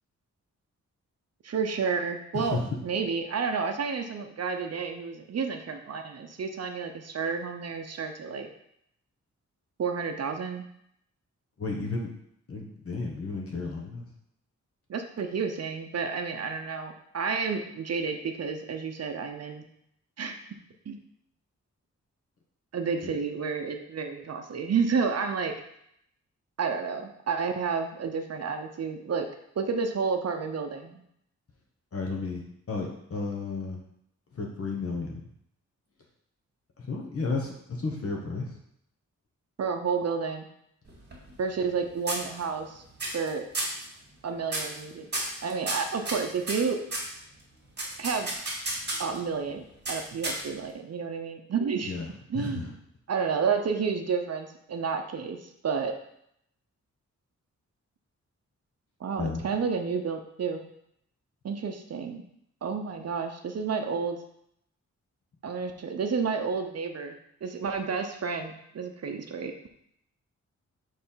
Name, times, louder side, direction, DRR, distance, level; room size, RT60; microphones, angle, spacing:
voice 1, 1.4-8.5 9.8-10.7 14.9-19.6 20.2-20.4 20.9-21.0 22.7-25.5 26.6-29.3 29.6-31.0 39.6-40.5 41.4-42.8 43.1-43.4 44.2-45.1 45.4-46.8 48.0-48.3 49.0-51.9 52.3-52.7 53.1-55.9 59.0-60.7 61.4-62.2 62.6-64.2 65.4-69.5, right 5 dB, 55° right, 5 dB, 0.7 m, -30 dB
voice 2, 11.6-12.1 12.5-14.1 23.0-23.1 31.9-33.8 34.3-35.2 36.8-38.6 51.8-52.7 59.2-59.4, left 3 dB, 50° left, 0 dB, 1.1 m, -33 dB
sound 1, 40.9-41.8 42.1-42.7 43.0-43.3 43.5-43.8 44.5-44.8 45.1-47.1 47.8-49.2 49.9-50.7, right 1 dB, 35° right, 2.0 m, -32 dB
6.7 x 3.3 x 5.6 m, 0.73 s
wide cardioid pair, 175°, 30 cm